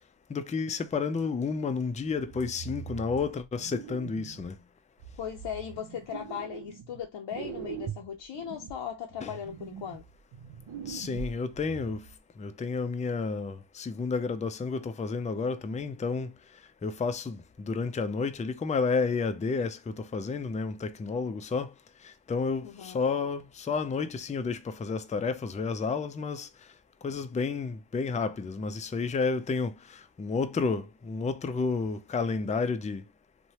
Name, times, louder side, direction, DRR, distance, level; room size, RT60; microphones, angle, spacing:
voice 1, 0.3-4.5 9.2-9.3 10.9-12.1 12.4-16.3 16.8-21.7 22.0-26.5 27.0-33.0, left 4 dB, 20° left, 0.3 m, -31 dB
sound 1, 2.1-4.5 5.0-7.0 7.3-12.1, right 8 dB, 80° right, 0.6 m, -42 dB
voice 2, 5.2-10.0 22.6-23.0, left 8 dB, 70° left, 0.6 m, -38 dB
3.1 x 2.1 x 2.7 m
cardioid pair, 65°, 46 cm